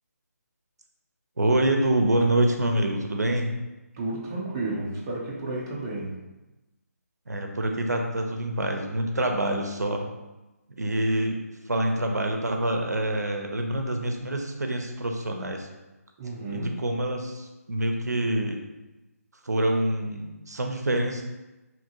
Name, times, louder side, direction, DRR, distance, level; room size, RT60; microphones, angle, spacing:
voice 1, 1.4-3.5 7.3-10.0 10.8-11.4 11.7-15.7 16.5-18.6 19.5-21.2, right 1 dB, 85° right, 3 dB, 0.5 m, -26 dB
voice 2, 3.9-6.2 16.2-16.7, right 2 dB, 15° right, -5 dB, 0.4 m, -32 dB
2.8 x 2.5 x 2.7 m, 1.0 s
figure-of-eight pair, 150°, 9 cm